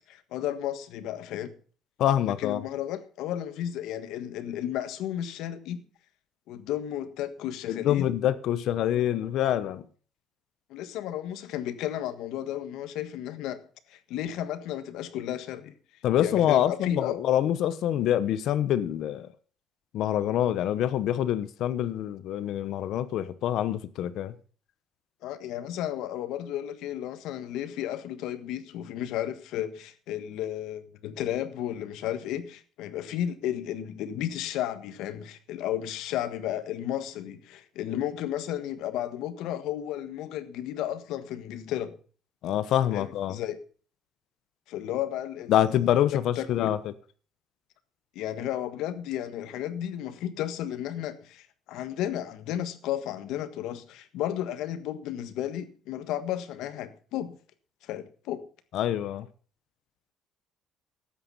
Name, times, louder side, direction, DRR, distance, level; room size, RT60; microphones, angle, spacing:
voice 1, 0.1-1.5 2.2-5.8 6.5-8.2 10.7-13.6 13.9-15.7 16.2-17.2 25.2-41.9 42.9-43.6 44.7-45.6 46.1-46.7 48.1-57.3 57.8-58.4, left 11 dB, 80° left, 1.5 m, -33 dB
voice 2, 2.0-2.6 7.7-9.8 16.0-19.3 19.9-24.3 42.4-43.4 45.5-46.8 58.7-59.3, left 11 dB, 60° left, 1.0 m, -26 dB
12.5 x 9.0 x 5.7 m
cardioid pair, 170°, 0 cm